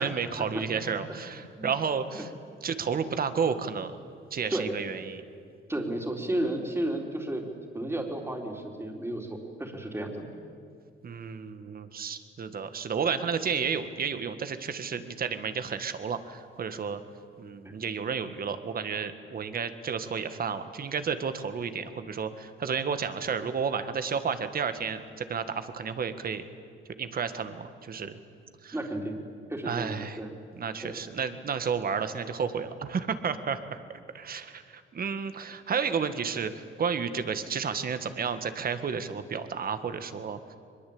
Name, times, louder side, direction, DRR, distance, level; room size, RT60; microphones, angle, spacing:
voice 1, 0.0-2.3 2.6-3.9 4.3-5.2 11.0-17.0 17.4-26.4 27.0-28.2 28.6-28.8 29.6-30.2 30.5-33.8 34.1-40.4, right 6 dB, 50° right, 10 dB, 1.7 m, -32 dB
voice 2, 5.7-7.4 7.7-10.3 17.6-17.7 28.7-29.2 29.5-30.3 30.8-31.0, right 1 dB, 10° right, 2 dB, 3.8 m, -33 dB
23.0 x 21.5 x 8.7 m, 2.3 s
cardioid pair, 90°, 20 cm